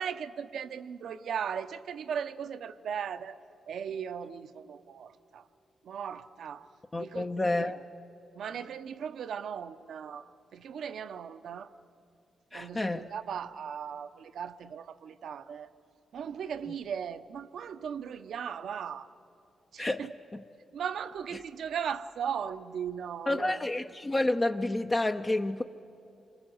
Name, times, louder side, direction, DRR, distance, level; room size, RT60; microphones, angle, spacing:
voice 1, 0.0-3.4 3.7-5.5 5.8-6.7 7.0-7.7 8.3-11.7 12.5-15.7 16.1-19.1 19.7-20.1 20.7-23.6, right 7 dB, 75° right, 11 dB, 0.9 m, -37 dB
voice 2, 6.9-7.8 12.5-13.1 19.8-20.1 23.3-25.6, left 2 dB, 20° left, 5 dB, 0.7 m, -29 dB
29.0 x 25.0 x 7.9 m, 2.7 s
cardioid pair, 115°, 0 cm